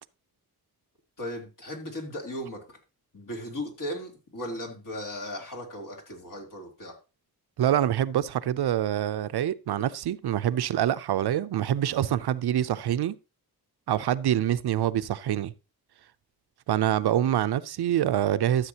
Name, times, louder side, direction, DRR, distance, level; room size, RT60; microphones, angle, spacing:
voice 1, 1.2-2.8 3.1-6.9, left 1 dB, 55° left, 3.4 m, -37 dB
voice 2, 7.6-13.1 13.9-15.5 16.7-18.7, right 11 dB, 85° right, 0.6 m, -25 dB
13.0 x 7.3 x 2.9 m
wide cardioid pair, 90°, 38 cm